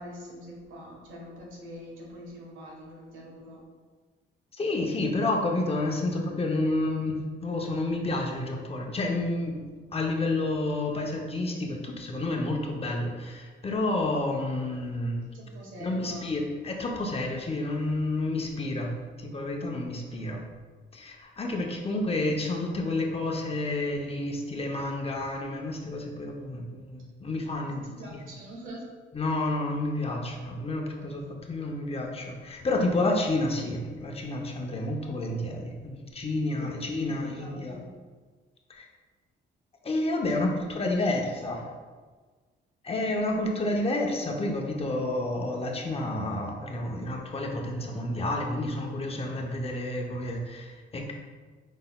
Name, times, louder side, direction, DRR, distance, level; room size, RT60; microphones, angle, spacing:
voice 1, 0.0-3.6 15.3-16.3 27.7-28.8 36.6-36.7 37.0-37.9 40.3-40.6 40.9-41.3, equal, 80° right, -2 dB, 1.3 m, -44 dB
voice 2, 4.6-9.6 9.9-15.2 15.8-18.9 19.2-20.4 20.9-27.8 29.1-37.8 38.7-38.9 39.8-41.7 42.8-51.1, left 2 dB, 30° left, 1 dB, 0.7 m, -30 dB
5.2 x 3.8 x 2.3 m, 1.4 s
cardioid pair, 90°, 20 cm